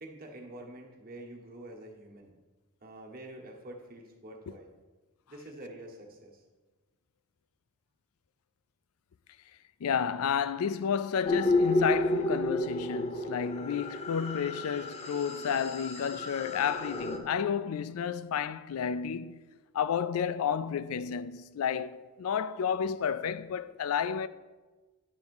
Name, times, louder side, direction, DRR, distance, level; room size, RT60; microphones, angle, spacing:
voice 1, 0.0-2.3 2.8-4.7 5.3-6.4, right 1 dB, 45° right, 1.3 m, -47 dB
voice 2, 9.8-19.4 19.7-24.3, left 7 dB, 80° left, 0.4 m, -31 dB
sound 1, 11.2-17.2, left 2 dB, 30° left, 0.8 m, -31 dB
9.7 x 3.6 x 6.9 m
head